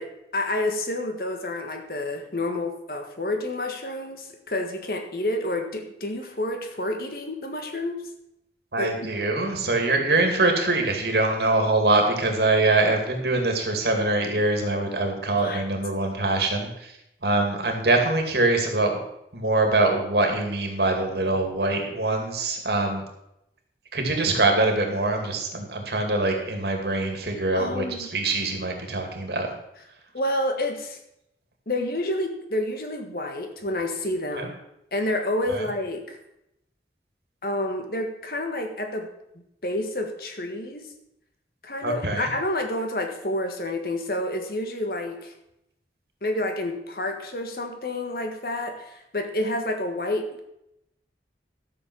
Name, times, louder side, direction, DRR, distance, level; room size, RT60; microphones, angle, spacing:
voice 1, 0.0-8.0 8.8-9.1 15.4-15.6 27.5-28.1 30.1-31.0 31.7-34.6 34.9-36.2 37.4-39.1 39.6-40.9 41.6-45.3 46.2-50.3, left 1 dB, 55° left, 5 dB, 1.6 m, -29 dB
voice 2, 8.7-16.9 17.2-19.0 19.3-23.0 23.9-29.5 34.4-34.5 35.5-35.6 41.8-42.3, right 2 dB, 70° right, 3 dB, 2.4 m, -23 dB
12.5 x 7.0 x 6.2 m, 0.81 s
head